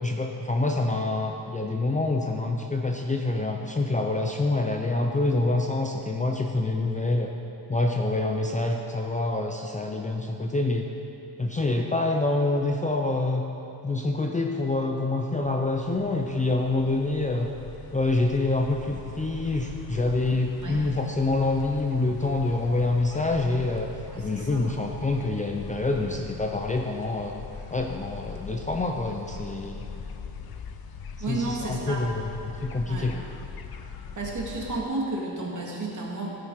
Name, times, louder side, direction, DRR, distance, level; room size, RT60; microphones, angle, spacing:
voice 1, 0.0-7.3 7.7-10.9 11.4-13.4 13.8-17.5 17.9-23.9 24.2-27.3 27.7-29.8 31.3-32.2 32.6-33.2, left 2 dB, 20° left, 2 dB, 0.5 m, -26 dB
sound 1, 15.4-34.8, left 6 dB, 60° left, 0.7 m, -41 dB
voice 2, 24.1-24.7 31.2-32.1 32.9-33.1 34.2-36.3, right 2 dB, 45° right, -3 dB, 2.1 m, -32 dB
17.0 x 5.8 x 4.8 m, 3.0 s
wide cardioid pair, 125°, 42 cm